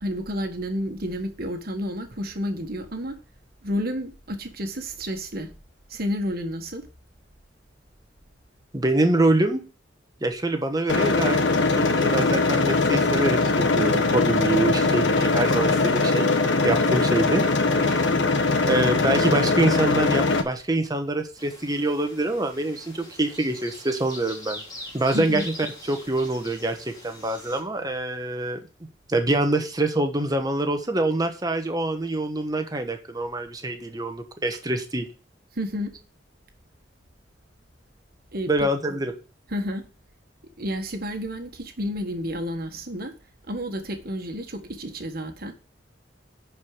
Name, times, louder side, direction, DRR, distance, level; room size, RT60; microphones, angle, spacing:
voice 1, 0.0-3.2 3.6-5.5 5.9-6.8 25.1-25.4 35.5-35.9 38.3-38.5 39.5-39.8 40.6-43.1 43.5-45.5, equal, 55° right, 1.5 m, -30 dB
voice 2, 8.7-9.6 10.2-11.4 11.8-16.4 16.6-17.4 17.7-18.1 18.7-24.6 24.9-25.4 25.9-28.6 29.1-35.1 38.5-39.1, right 2 dB, 20° right, 1.2 m, -25 dB
sound 1, 10.9-20.4, left 3 dB, 75° left, 1.2 m, -21 dB
sound 2, 21.4-27.6, left 1 dB, 20° left, 3.1 m, -42 dB
10.5 x 4.8 x 4.9 m
head